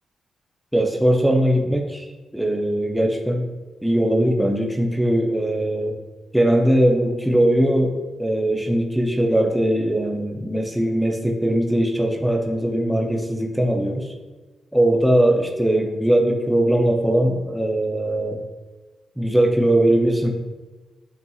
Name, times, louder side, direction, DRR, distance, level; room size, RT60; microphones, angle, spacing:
voice 1, 0.7-2.1 2.3-3.5 3.8-6.0 6.3-7.9 8.2-14.1 14.7-18.4 19.2-20.3, right 1 dB, ahead, 1 dB, 0.5 m, -20 dB
8.0 x 2.7 x 2.3 m, 1.2 s
wide cardioid pair, 150°, 0 cm